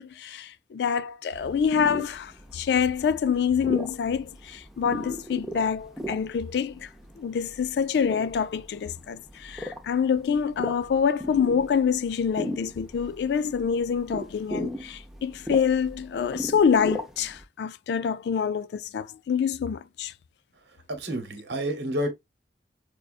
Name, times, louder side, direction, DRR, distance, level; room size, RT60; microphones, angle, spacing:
voice 1, 0.0-6.9 7.2-20.1, left 7 dB, 70° left, 0.3 m, -26 dB
sound 1, 1.3-17.4, equal, ahead, 0.5 m, -38 dB
voice 2, 20.9-22.1, right 1 dB, 75° right, 1.0 m, -29 dB
5.3 x 2.2 x 2.4 m
head